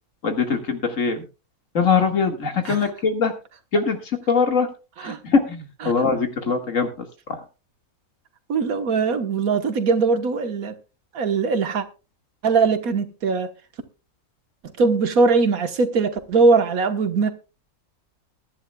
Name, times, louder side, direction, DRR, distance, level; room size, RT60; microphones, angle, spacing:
voice 1, 0.2-1.2 1.7-3.3 3.7-4.7 5.0-7.4, left 5 dB, 60° left, 2.2 m, -22 dB
voice 2, 8.5-10.8 11.1-11.8 12.4-13.5 14.8-17.3, right 4 dB, 70° right, 1.6 m, -20 dB
21.5 x 10.5 x 2.3 m
omnidirectional pair, 1.6 m